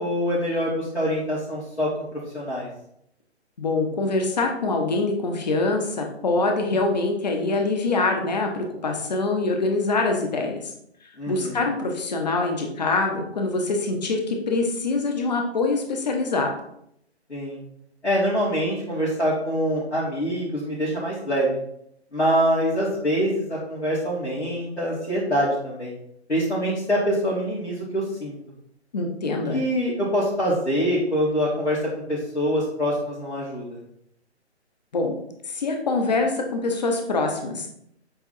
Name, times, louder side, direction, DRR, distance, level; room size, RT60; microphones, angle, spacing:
voice 1, 0.0-2.7 11.2-11.7 17.3-17.6 18.0-21.6 22.1-25.9 26.3-28.3 29.5-31.8 32.1-33.8, equal, 75° left, -9 dB, 2.7 m, -25 dB
voice 2, 3.6-10.7 11.3-16.5 28.9-29.6 34.9-35.1 35.4-37.7, left 3 dB, 40° left, 3 dB, 1.2 m, -24 dB
7.9 x 3.7 x 4.2 m, 0.73 s
figure-of-eight pair, 140°, 34 cm